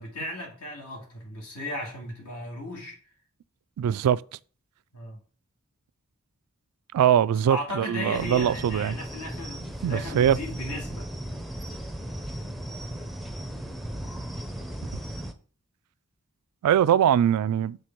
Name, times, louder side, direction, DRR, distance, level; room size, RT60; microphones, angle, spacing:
voice 1, 0.0-3.0 4.9-5.2 7.5-11.1, left 1 dB, 85° left, 1.9 m, -36 dB
voice 2, 3.8-4.2 6.9-8.9 9.8-10.4 16.6-17.8, right 9 dB, 85° right, 0.3 m, -22 dB
sound 1, 8.1-15.3, right 1 dB, ahead, 0.5 m, -36 dB
6.6 x 3.4 x 4.4 m
head